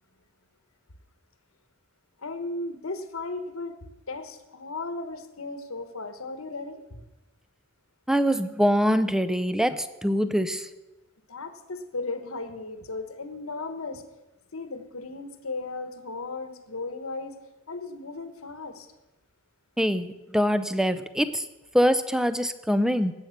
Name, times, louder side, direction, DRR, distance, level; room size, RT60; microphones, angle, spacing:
voice 1, 2.2-3.8 4.1-7.0 11.3-14.0 14.5-17.4 17.7-18.9, left 3 dB, 80° left, 9 dB, 1.2 m, -36 dB
voice 2, 8.1-10.7 19.8-21.5 21.7-23.1, equal, 5° right, 12 dB, 0.6 m, -24 dB
19.0 x 8.1 x 5.8 m, 1.0 s
head